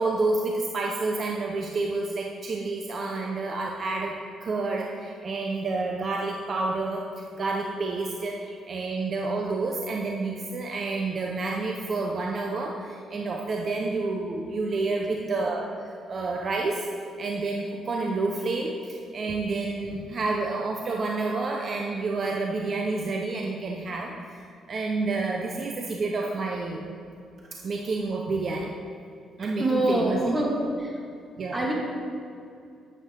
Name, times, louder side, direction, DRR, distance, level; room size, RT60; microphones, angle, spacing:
voice 1, 0.0-4.1 4.4-27.0 27.5-28.7 29.4-30.2 31.4-31.6, right 3 dB, 50° right, 0 dB, 0.7 m, -29 dB
voice 2, 29.6-31.0 31.5-31.7, right 1 dB, 15° right, -2 dB, 2.0 m, -26 dB
9.0 x 7.7 x 3.8 m, 2.4 s
cardioid pair, 90°, 0 cm